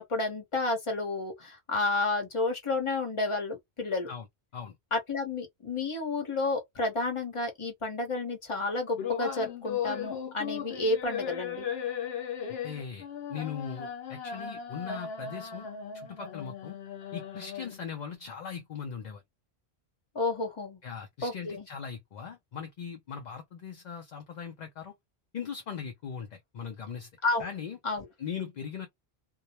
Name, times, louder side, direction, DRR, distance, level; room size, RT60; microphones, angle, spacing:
voice 1, 0.0-4.1 4.9-11.7 20.1-20.8 21.2-21.7 27.2-27.5 27.8-28.1, left 3 dB, 30° left, 0.9 m, -31 dB
sound 1, 9.0-18.0, left 8 dB, 70° left, 1.0 m, -37 dB
voice 2, 12.6-15.7 15.9-16.8 17.1-19.2 20.8-24.9 25.3-27.1 27.4-27.8 28.2-28.9, left 7 dB, 55° left, 0.5 m, -39 dB
2.2 x 2.0 x 2.8 m
omnidirectional pair, 1.1 m